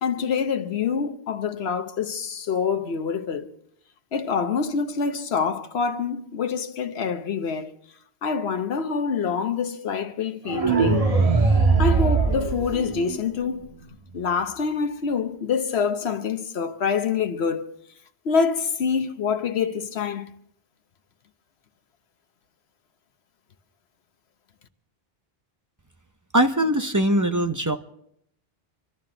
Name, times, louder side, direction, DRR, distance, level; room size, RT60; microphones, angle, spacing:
voice 1, 0.0-3.5 4.1-7.7 8.2-11.1 11.8-13.7 14.1-17.7 18.2-20.3, left 6 dB, 85° left, 1.2 m, -26 dB
sound 1, 10.5-13.5, right 4 dB, 35° right, 1.5 m, -21 dB
voice 2, 26.3-27.8, right 1 dB, 20° right, 0.7 m, -21 dB
25.5 x 12.5 x 3.9 m
omnidirectional pair, 1.1 m